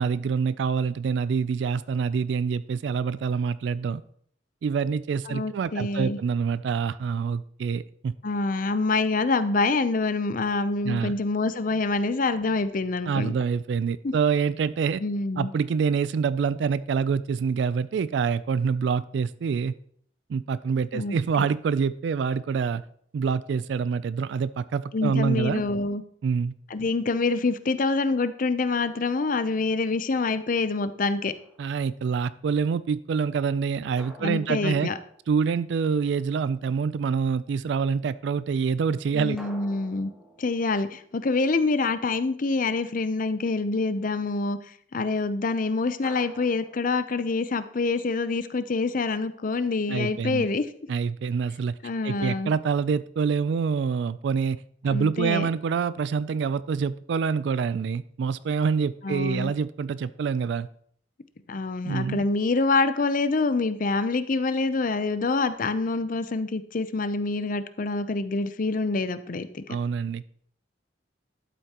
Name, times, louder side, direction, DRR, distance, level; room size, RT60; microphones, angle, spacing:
voice 1, 0.0-4.0 4.6-8.1 10.8-11.1 13.1-15.0 15.4-19.7 20.3-22.8 23.1-25.6 26.2-26.5 31.6-34.9 35.3-39.4 49.9-50.5 50.9-51.8 52.0-54.6 54.8-60.7 61.8-62.2 69.7-70.3, right 6 dB, 70° right, 16 dB, 0.3 m, -26 dB
voice 2, 5.3-6.2 8.2-13.3 14.0-14.1 15.0-15.5 20.9-21.5 24.9-26.0 26.7-31.3 34.2-34.9 39.1-40.1 40.4-44.6 44.9-50.7 51.8-52.5 54.9-55.5 59.0-59.5 61.5-69.6, left 3 dB, 45° left, 12 dB, 0.6 m, -26 dB
sound 1, 31.3-31.9 34.0-35.8 39.4-42.0 46.0-47.7, right 1 dB, ahead, 1.0 m, -50 dB
12.0 x 7.9 x 2.9 m, 0.62 s
head